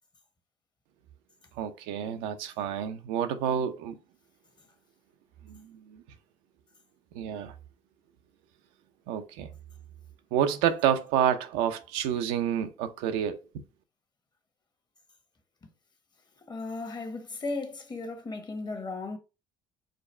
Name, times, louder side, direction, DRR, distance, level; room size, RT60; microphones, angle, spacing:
voice 1, 1.6-4.0 5.4-6.0 7.1-7.5 9.1-9.5 10.3-13.4, right 9 dB, 85° right, 0.6 m, -29 dB
voice 2, 16.5-19.2, left 3 dB, 30° left, 1.1 m, -36 dB
5.0 x 2.3 x 4.3 m
supercardioid pair, 75°, 13 cm